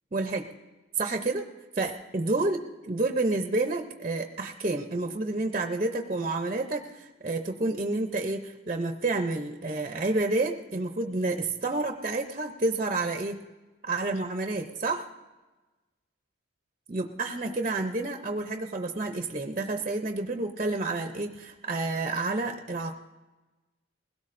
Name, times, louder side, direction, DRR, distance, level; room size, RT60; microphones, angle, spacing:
voice 1, 0.1-0.5 1.0-1.5 1.8-13.4 13.8-15.0 16.9-22.9, right 2 dB, 30° right, 5 dB, 0.6 m, -29 dB
21.0 x 17.0 x 2.5 m, 1.2 s
head